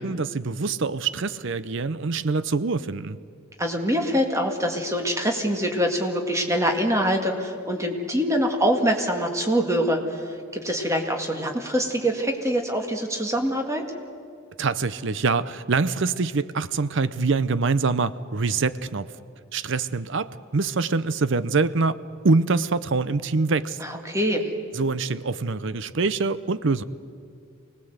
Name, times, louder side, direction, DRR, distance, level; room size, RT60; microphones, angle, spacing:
voice 1, 0.0-3.2 14.6-19.1 19.5-23.8 24.7-26.8, right 4 dB, 60° right, 15 dB, 0.6 m, -24 dB
voice 2, 3.6-10.2 10.5-13.8 23.8-24.5, equal, 15° right, 3 dB, 2.0 m, -24 dB
25.0 x 18.5 x 8.0 m, 2.4 s
head